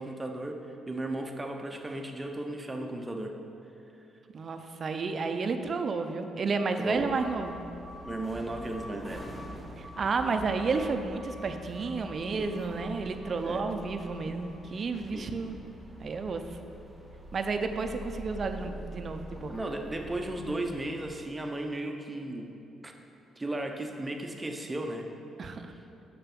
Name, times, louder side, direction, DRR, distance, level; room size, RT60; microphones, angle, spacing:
voice 1, 0.0-3.4 6.8-7.1 8.0-9.3 12.3-12.5 13.4-13.6 15.1-15.3 19.5-22.5 22.8-22.9 23.4-25.1, right 1 dB, 15° right, 3 dB, 0.8 m, -35 dB
voice 2, 4.3-7.6 9.8-15.6 16.0-16.4 17.3-19.6 25.4-25.7, right 4 dB, 45° right, 7 dB, 0.6 m, -31 dB
sound 1, 6.9-21.1, equal, ahead, 1.1 m, -45 dB
6.9 x 6.0 x 5.9 m, 2.8 s
cardioid pair, 90°, 0 cm